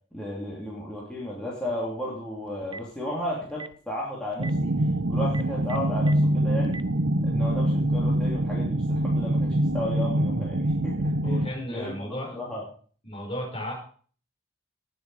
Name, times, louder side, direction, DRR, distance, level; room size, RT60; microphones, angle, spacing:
voice 1, 0.1-4.8 5.1-6.8 7.2-11.3 11.7-12.6, equal, 5° left, -6 dB, 3.1 m, -34 dB
Telephone, 2.5-2.9 3.5-3.7 4.3-4.5 5.2-6.1 6.6-6.8, right 3 dB, 20° right, 0.6 m, -39 dB
sound 1, 4.4-11.5, right 1 dB, 60° right, 0.8 m, -24 dB
voice 2, 11.2-12.4 13.0-13.8, left 1 dB, 30° left, -1 dB, 5.4 m, -34 dB
19.0 x 7.0 x 4.9 m, 0.43 s
head